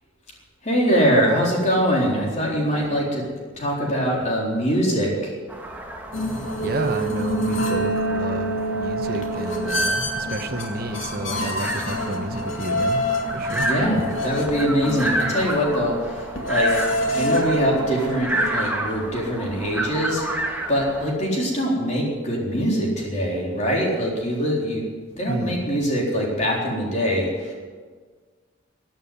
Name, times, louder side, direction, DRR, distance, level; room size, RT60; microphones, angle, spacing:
voice 1, 0.6-3.2 3.6-5.3 13.6-16.7 17.1-20.2 20.7-24.8 25.2-27.5, equal, 35° left, -3 dB, 4.1 m, -23 dB
sound 1, 5.5-21.1, right 1 dB, 10° right, 1.6 m, -31 dB
sound 2, 6.1-18.7, equal, 75° left, 2.4 m, -27 dB
voice 2, 6.6-13.1 13.3-13.7 25.3-25.7, right 1 dB, 50° right, 5 dB, 1.1 m, -30 dB
15.5 x 9.1 x 9.5 m, 1.5 s
head